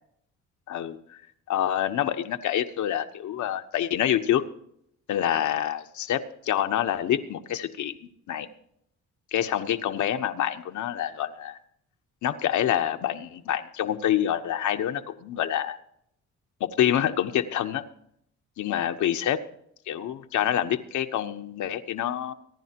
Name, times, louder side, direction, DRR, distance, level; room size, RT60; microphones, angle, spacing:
voice 1, 0.7-1.2 1.5-4.4 5.1-8.5 9.3-11.6 12.2-15.8 16.6-17.8 18.6-19.4 19.9-22.3, left 11 dB, 75° left, 8 dB, 1.1 m, -27 dB
25.0 x 10.5 x 2.9 m, 0.72 s
cardioid pair, 90°, 30 cm